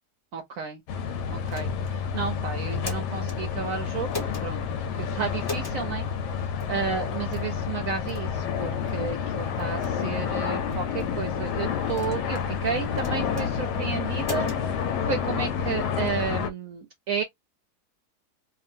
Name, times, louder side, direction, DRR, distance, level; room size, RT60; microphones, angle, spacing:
voice 1, 0.3-0.8 1.3-4.6 5.0-6.1 6.7-14.5 15.1-17.2, right 6 dB, 65° right, 0.9 m, -32 dB
sound 1, 0.9-16.5, left 7 dB, 90° left, 1.2 m, -29 dB
sound 2, 1.5-2.0 2.6-3.4 4.1-4.5 5.4-5.8 6.6-6.7 7.3-7.5 8.1-8.3 8.9-9.0 9.6-9.9 10.7-11.1 11.9-12.5 13.0-13.5 14.2-14.6, left 2 dB, 25° left, 0.5 m, -39 dB
2.9 x 2.4 x 2.6 m
omnidirectional pair, 1.7 m